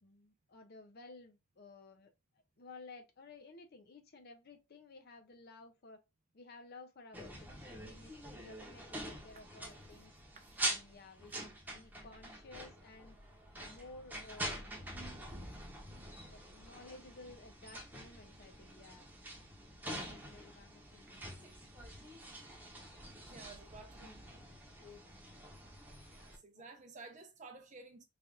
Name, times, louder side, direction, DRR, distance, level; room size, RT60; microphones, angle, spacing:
voice 1, 0.0-6.0 6.3-10.1 10.6-13.2 13.6-14.8 16.2-19.1 19.8-22.2 23.8-24.2 24.8-25.0 26.5-26.7, left 3 dB, 45° left, 0.5 m, -56 dB
sound 1, 7.1-26.4, right 1 dB, 10° right, 0.8 m, -46 dB
voice 2, 10.3-10.7 23.1-24.2 24.7-24.9 25.8-28.0, right 3 dB, 35° right, 0.5 m, -54 dB
3.3 x 2.4 x 3.7 m
head